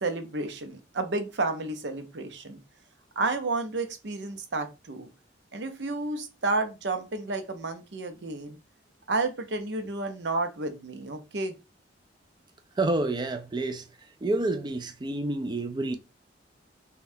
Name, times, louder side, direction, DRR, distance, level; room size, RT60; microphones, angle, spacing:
voice 1, 0.0-2.6 3.2-5.1 5.5-8.6 9.1-11.6, right 3 dB, 65° right, 0.7 m, -31 dB
voice 2, 12.8-13.9 14.2-16.0, right 2 dB, 25° right, 0.4 m, -28 dB
5.2 x 2.3 x 2.6 m
head